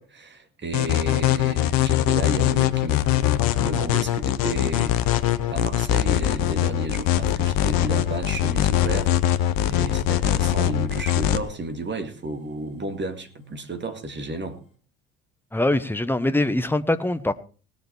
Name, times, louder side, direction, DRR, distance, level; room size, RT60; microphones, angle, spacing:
voice 1, 0.0-14.6, right 2 dB, 25° right, 2.2 m, -32 dB
sound 1, 0.7-11.4, left 12 dB, 55° left, 1.0 m, -22 dB
sound 2, 2.4-14.8, right 5 dB, 80° left, 2.6 m, -47 dB
voice 2, 15.5-17.3, left 1 dB, 5° left, 1.0 m, -23 dB
19.0 x 7.2 x 4.6 m
figure-of-eight pair, 55°, 41 cm